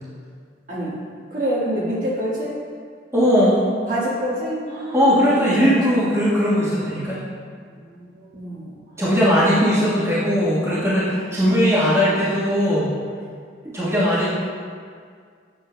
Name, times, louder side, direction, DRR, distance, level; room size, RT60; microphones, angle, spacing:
voice 1, 1.3-2.5 3.9-5.1 5.4-5.8 7.9-8.0 8.3-8.7 11.0-11.4, right 1 dB, 50° right, -8 dB, 1.6 m, -26 dB
voice 2, 3.1-3.6 4.9-7.2 9.0-12.9 13.6-14.3, equal, 15° right, -10 dB, 1.4 m, -19 dB
7.7 x 6.8 x 2.2 m, 2.1 s
head